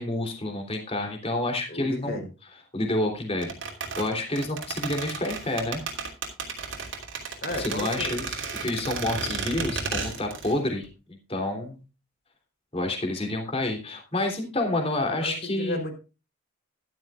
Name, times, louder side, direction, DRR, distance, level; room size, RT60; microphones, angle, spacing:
voice 1, 0.0-2.2 2.7-3.5 4.0-5.8 7.6-11.8 12.7-15.8, left 2 dB, 25° left, 3 dB, 3.1 m, -29 dB
voice 2, 1.7-2.3 7.4-8.1 15.2-15.9, left 1 dB, 45° left, 4 dB, 3.6 m, -33 dB
sound 1, 3.4-10.6 10.8-10.9, right 5 dB, 65° right, 3.0 m, -33 dB
13.5 x 12.5 x 2.4 m, 0.31 s
head